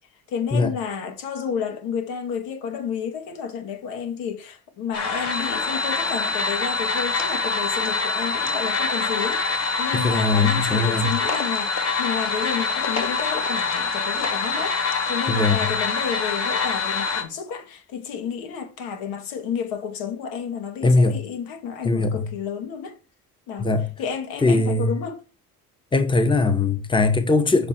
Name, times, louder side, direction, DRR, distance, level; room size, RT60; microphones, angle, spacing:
voice 1, 0.3-23.0 23.5-23.7 24.0-25.2, left 7 dB, 90° left, 2.3 m, -31 dB
sound 1, 4.9-17.2, left 4 dB, 50° left, 2.4 m, -25 dB
voice 2, 9.9-11.1 15.3-15.7 20.8-21.2 21.8-22.3 23.6-23.9 24.4-24.9 25.9-27.7, left 3 dB, 15° left, 1.2 m, -20 dB
7.2 x 6.2 x 4.5 m
cardioid pair, 110°, 34 cm